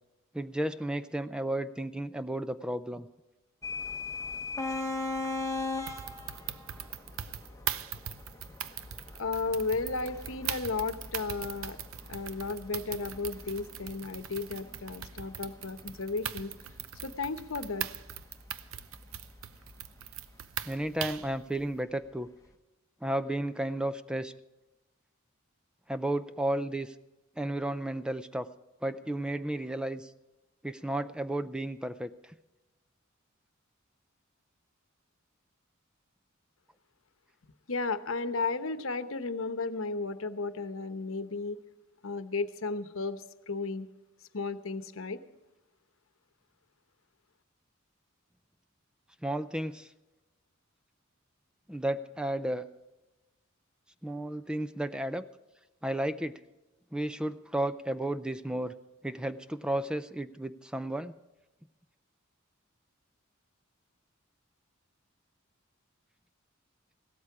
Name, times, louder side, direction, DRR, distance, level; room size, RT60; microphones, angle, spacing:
voice 1, 0.3-3.1 20.7-22.3 23.0-24.3 25.9-26.9 27.4-28.5 28.8-30.1 30.6-32.1 49.2-49.9 51.7-52.6 54.0-55.2 55.8-56.4 56.9-58.7 59.0-61.2, right 1 dB, 5° right, 12 dB, 0.4 m, -33 dB
sound 1, 3.6-21.3, left 3 dB, 15° left, 1.1 m, -41 dB
sound 2, 5.9-21.3, right 10 dB, 85° right, 0.7 m, -40 dB
voice 2, 9.2-11.8 12.1-16.5 17.0-17.9 37.7-41.6 42.0-43.9 44.3-45.2, left 3 dB, 75° left, 11 dB, 0.9 m, -34 dB
16.5 x 13.0 x 4.9 m, 1.1 s
head